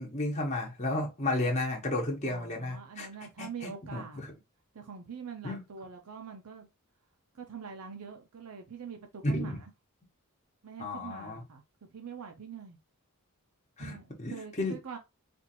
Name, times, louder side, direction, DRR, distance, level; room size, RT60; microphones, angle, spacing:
voice 1, 0.0-3.1 3.4-4.3 5.4-5.6 9.2-9.6 10.8-11.4 13.8-14.7, left 2 dB, 30° left, 1.0 m, -33 dB
voice 2, 2.3-4.2 4.7-6.7 7.3-9.7 10.6-11.6 11.9-12.8 13.8-15.0, right 6 dB, 80° right, 0.6 m, -44 dB
4.3 x 2.5 x 2.8 m
head